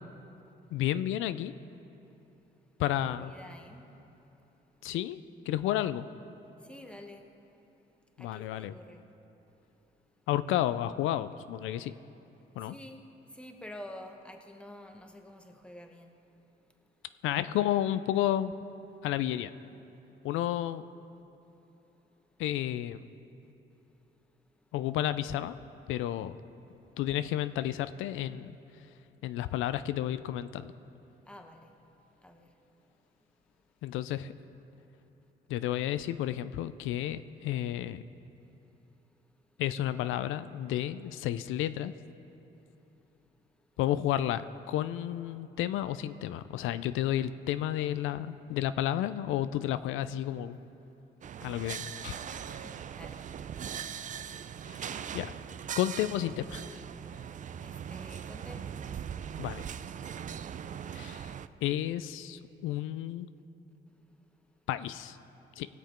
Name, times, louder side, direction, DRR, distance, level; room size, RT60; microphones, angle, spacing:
voice 1, 0.7-1.5 2.8-3.3 4.8-5.2 5.5-6.0 8.2-8.8 10.3-11.9 12.6-12.7 17.2-18.5 19.0-19.5 20.2-20.9 22.4-23.0 24.7-25.6 25.9-26.3 27.0-28.6 29.2-30.7 33.8-34.3 35.5-38.0 39.6-41.9 43.8-50.6 51.4-52.6 54.7-54.8 55.1-55.3 55.8-56.8 59.4-59.6 60.9-61.3 61.6-63.3 64.7-65.2 65.6-65.7, left 12 dB, 85° left, 13 dB, 0.4 m, -31 dB
voice 2, 2.9-3.9 6.7-7.3 8.2-9.1 12.6-13.0 13.3-16.1 31.3-31.7 32.2-32.5 52.5-53.2 57.6-58.7, left 1 dB, 5° left, 3 dB, 1.1 m, -49 dB
sound 1, 51.2-61.5, right 8 dB, 40° right, 0.4 m, -40 dB
18.5 x 7.2 x 4.4 m, 2.9 s
cardioid pair, 90°, 20 cm